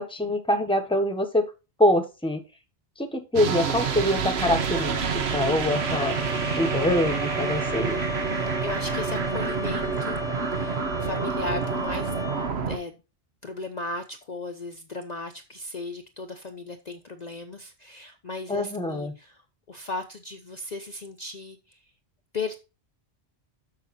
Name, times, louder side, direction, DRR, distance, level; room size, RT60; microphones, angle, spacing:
voice 1, 0.0-1.5 1.8-2.4 3.0-6.2 6.5-8.0 18.5-19.1, left 1 dB, 5° left, 7 dB, 1.1 m, -25 dB
sound 1, 3.4-12.8, right 6 dB, 70° right, 1.3 m, -28 dB
Trumpet, 5.7-12.5, left 3 dB, 75° left, 1.4 m, -35 dB
voice 2, 8.3-10.2 10.5-12.1 12.7-12.9 13.4-19.4 19.7-21.8 22.3-22.6, left 3 dB, 40° left, 5 dB, 0.8 m, -36 dB
6.7 x 6.7 x 4.2 m, 0.29 s
omnidirectional pair, 1.1 m